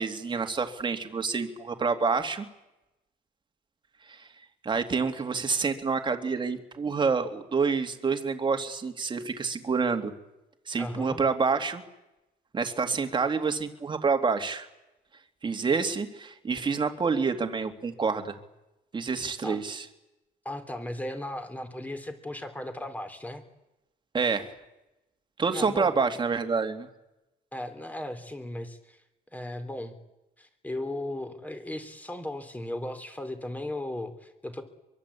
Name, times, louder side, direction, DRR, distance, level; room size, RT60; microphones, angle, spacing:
voice 1, 0.0-2.5 4.1-4.3 4.6-10.1 10.7-11.8 12.5-14.7 15.4-18.4 18.9-19.9 24.1-24.5 25.4-26.9, right 5 dB, 30° right, 6 dB, 2.7 m, -28 dB
voice 2, 10.8-11.2 19.4-19.6 20.5-23.4 25.5-25.9 27.5-29.0 29.3-30.0 30.4-34.6, left 1 dB, 10° left, 8 dB, 3.5 m, -36 dB
25.0 x 23.5 x 8.6 m, 0.96 s
cardioid pair, 110°, 17 cm